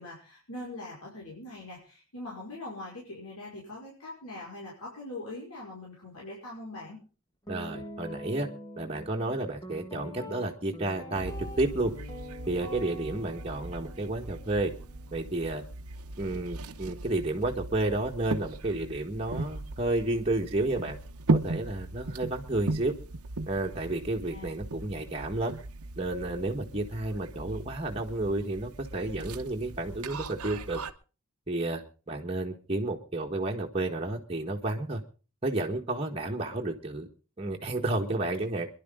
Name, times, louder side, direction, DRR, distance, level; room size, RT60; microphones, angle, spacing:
voice 1, 0.0-7.0 24.3-24.5, left 2 dB, 85° left, -4 dB, 5.4 m, -42 dB
Guitar, 7.5-15.6, equal, 15° left, 1.7 m, -44 dB
voice 2, 7.5-8.5 8.8-11.9 12.5-14.7 15.1-15.6 16.2-21.0 21.3-22.9 23.5-25.5 26.0-30.8 31.5-35.0 35.4-37.1 37.4-38.7, right 2 dB, 25° right, 0 dB, 1.6 m, -31 dB
sound 1, 11.1-30.9, right 2 dB, 85° right, 1.0 m, -37 dB
25.5 x 11.5 x 3.8 m, 0.36 s
head